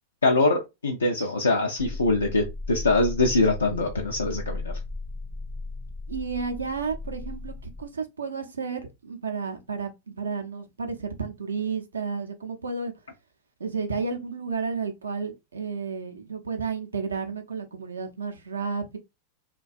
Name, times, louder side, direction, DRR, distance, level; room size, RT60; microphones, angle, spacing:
voice 1, 0.2-4.7, left 2 dB, 85° left, 0.4 m, -23 dB
sound 1, 1.8-7.8, left 3 dB, 10° left, 0.4 m, -36 dB
voice 2, 6.1-12.9 13.6-19.0, right 5 dB, 85° right, 0.5 m, -32 dB
2.5 x 2.2 x 2.4 m
hypercardioid pair, 95°, 0 cm